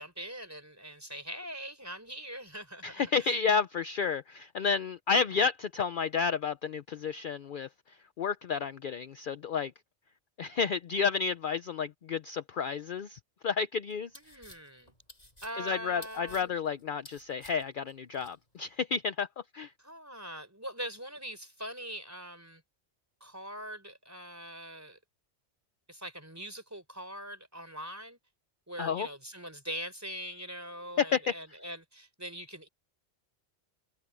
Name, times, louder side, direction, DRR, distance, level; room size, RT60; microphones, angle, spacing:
voice 1, 0.0-3.4 14.1-14.9 15.4-16.5 19.8-22.6 23.2-25.0 25.9-28.2 28.7-32.7, equal, 15° right, 4.1 m, -42 dB
voice 2, 2.8-7.7 8.2-9.7 10.4-14.1 15.6-19.3 19.5-19.7 28.8-29.1 31.0-31.3, left 5 dB, 55° left, 0.7 m, -31 dB
sound 1, 13.9-18.4, left 1 dB, 35° left, 8.2 m, -53 dB
omnidirectional pair, 1.1 m